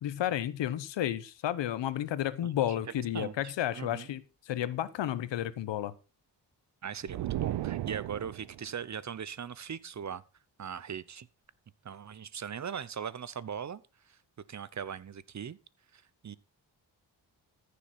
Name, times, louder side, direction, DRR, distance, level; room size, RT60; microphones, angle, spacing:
voice 1, 0.0-5.9, left 12 dB, 90° left, 1.0 m, -32 dB
voice 2, 3.0-4.1 6.8-10.2 10.6-11.3 11.8-13.8 14.1-14.2 14.5-15.6 15.9-16.4, right 7 dB, 40° right, 0.8 m, -39 dB
sound 1, 7.1-8.6, right 14 dB, 75° right, 0.7 m, -35 dB
14.5 x 7.0 x 4.3 m
cardioid pair, 90°, 42 cm